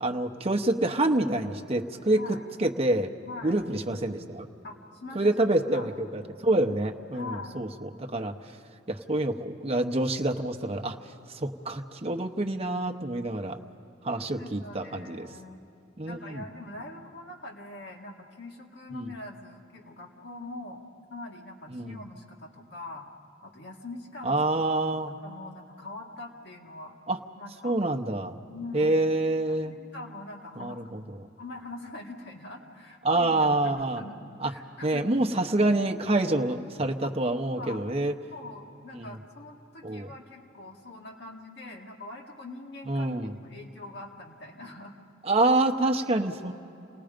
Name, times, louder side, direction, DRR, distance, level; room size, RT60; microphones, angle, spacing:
voice 1, 0.0-3.1 3.4-4.5 5.1-8.3 8.9-11.0 11.3-13.6 14.0-15.3 16.0-16.5 18.9-19.1 21.7-21.9 24.2-25.1 27.1-27.2 27.6-28.3 28.7-29.8 30.6-31.0 33.0-34.0 34.4-34.5 34.8-38.1 39.0-39.2 39.8-40.1 42.9-43.3 45.2-46.5, right 2 dB, 30° right, 4 dB, 0.9 m, -27 dB
voice 2, 3.2-3.6 4.6-5.9 7.1-7.6 14.4-15.6 16.0-20.8 21.1-23.1 23.4-24.4 25.2-27.0 27.4-27.8 28.5-29.0 29.5-30.9 31.4-35.1 37.0-37.1 37.5-37.8 38.3-44.9, left 2 dB, 60° left, 0 dB, 2.0 m, -43 dB
28.5 x 18.5 x 5.1 m, 2.9 s
head